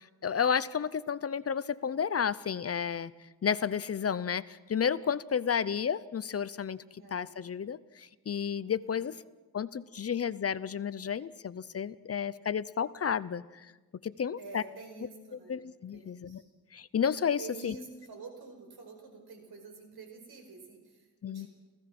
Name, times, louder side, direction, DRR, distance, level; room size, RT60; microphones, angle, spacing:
voice 1, 0.0-3.1 3.4-9.2 9.5-13.7 14.0-14.6 15.5-16.4 16.7-17.7 21.2-21.5, left 7 dB, 40° left, 17 dB, 0.6 m, -32 dB
voice 2, 6.9-7.4 8.8-9.0 14.3-15.6 15.9-16.5 17.4-21.5, right 4 dB, 80° right, 4 dB, 5.2 m, -48 dB
29.5 x 16.0 x 6.0 m, 1.2 s
wide cardioid pair, 140°, 37 cm